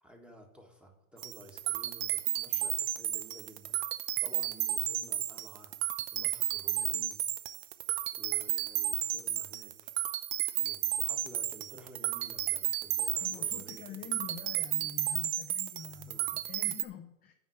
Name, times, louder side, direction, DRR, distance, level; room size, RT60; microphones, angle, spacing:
voice 1, 0.0-3.8 4.2-5.7 6.1-7.2 8.1-10.0 10.5-14.2 14.4-14.5 15.8-16.5, right 1 dB, 5° right, 2 dB, 1.6 m, -53 dB
sound 1, 1.2-16.8, right 12 dB, 30° right, 0.5 m, -33 dB
voice 2, 13.2-17.3, left 8 dB, 20° left, 4 dB, 0.6 m, -46 dB
9.6 x 5.0 x 8.0 m, 0.85 s
hypercardioid pair, 125°, 41 cm